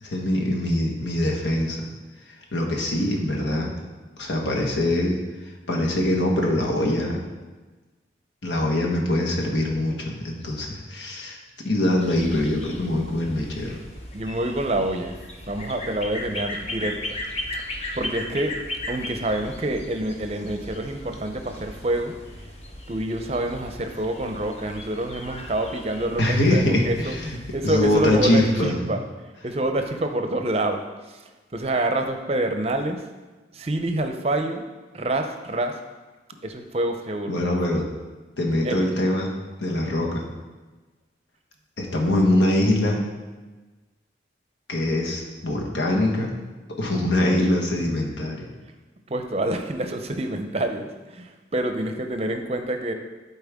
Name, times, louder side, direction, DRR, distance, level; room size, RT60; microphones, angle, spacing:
voice 1, 0.0-1.9 2.5-3.7 4.2-5.2 5.7-7.2 8.4-11.4 11.6-13.8 26.2-27.4 27.6-28.7 37.3-37.9 38.4-39.3 39.6-40.2 41.8-43.0 44.7-46.3 46.8-48.4, left 1 dB, 85° left, -1 dB, 1.4 m, -23 dB
sound 1, 12.0-28.5, left 1 dB, 35° left, 0.8 m, -37 dB
voice 2, 14.1-15.2 15.5-17.2 17.9-18.5 18.9-22.1 22.9-29.0 29.4-30.8 31.1-31.2 31.5-33.0 33.5-34.7 34.9-35.7 36.4-37.4 38.6-38.9 49.1-52.9, right 1 dB, 35° right, 6 dB, 0.6 m, -27 dB
11.5 x 4.3 x 3.5 m, 1.3 s
head